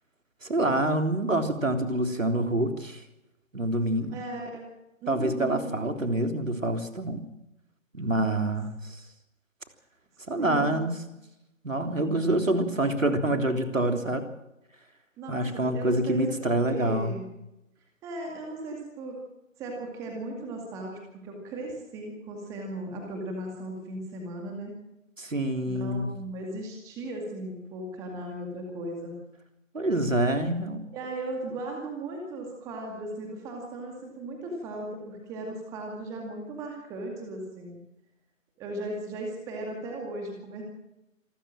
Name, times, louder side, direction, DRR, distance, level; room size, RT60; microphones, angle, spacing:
voice 1, 0.4-3.0 3.5-4.1 5.1-7.3 7.9-9.0 10.3-11.0 11.6-14.2 15.3-17.2 25.2-26.1 29.7-30.8, right 1 dB, 70° right, 5 dB, 3.5 m, -26 dB
voice 2, 4.1-4.7 5.0-5.8 10.3-10.9 15.2-17.3 18.0-19.2 19.6-24.7 25.7-29.2 30.9-37.8 38.6-40.6, right 2 dB, 10° right, 1 dB, 2.2 m, -37 dB
27.0 x 14.0 x 7.6 m, 0.93 s
figure-of-eight pair, 150°, 40 cm